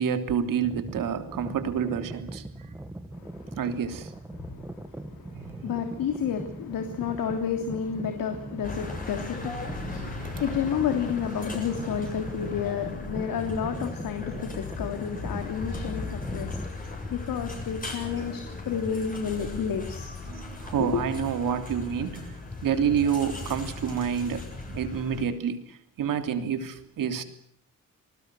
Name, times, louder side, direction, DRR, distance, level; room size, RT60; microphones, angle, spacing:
voice 1, 0.0-2.7 3.6-4.1 5.3-5.6 9.9-10.4 16.1-16.4 16.8-17.0 18.7-18.8 20.3-27.2, right 7 dB, 70° right, 3.2 m, -29 dB
sound 1, 0.6-16.7, right 1 dB, 5° right, 1.5 m, -41 dB
voice 2, 3.2-3.6 4.3-16.6 17.1-20.1 20.9-21.0, left 7 dB, 75° left, 3.2 m, -31 dB
sound 2, 8.6-25.2, left 3 dB, 25° left, 7.6 m, -37 dB
27.5 x 20.0 x 7.8 m
cardioid pair, 140°, 34 cm